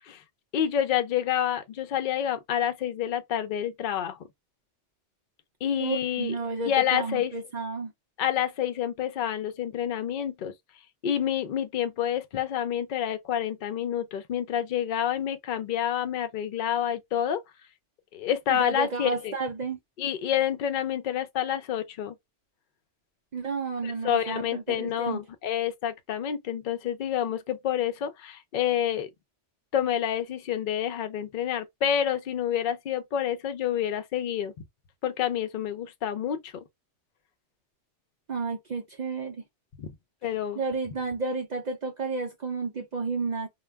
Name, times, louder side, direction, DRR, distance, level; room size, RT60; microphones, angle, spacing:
voice 1, 0.5-4.2 5.6-6.3 6.7-7.3 8.2-10.5 11.0-17.4 18.1-19.3 20.0-22.1 23.8-29.1 29.7-34.5 35.0-36.5 39.8-39.9 40.2-40.6, left 10 dB, 55° left, 0.6 m, -28 dB
voice 2, 5.8-7.9 18.5-19.8 23.3-25.2 38.3-39.4 40.5-43.5, right 4 dB, 60° right, 0.4 m, -31 dB
2.2 x 2.2 x 3.3 m
omnidirectional pair, 1.2 m